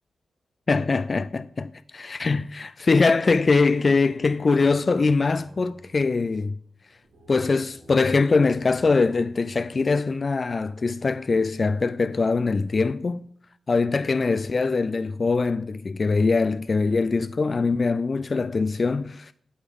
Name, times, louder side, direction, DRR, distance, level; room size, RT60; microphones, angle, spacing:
voice 1, 0.7-6.5 7.3-13.3 13.7-19.3, left 4 dB, 50° left, 0.3 m, -22 dB
Singing, 3.2-10.6, equal, 65° right, 3.3 m, -50 dB
8.6 x 8.4 x 3.6 m
cardioid pair, 50°, 0 cm